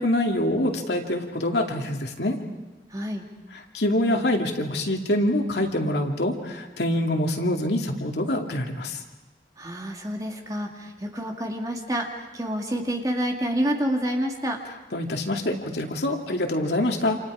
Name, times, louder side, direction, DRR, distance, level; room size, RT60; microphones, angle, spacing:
voice 1, 0.0-2.4 3.7-9.0 14.9-17.2, left 1 dB, 75° left, 3 dB, 2.6 m, -25 dB
voice 2, 2.9-3.2 9.6-14.6, equal, 20° right, 2 dB, 2.4 m, -28 dB
29.0 x 27.5 x 5.0 m, 1.1 s
head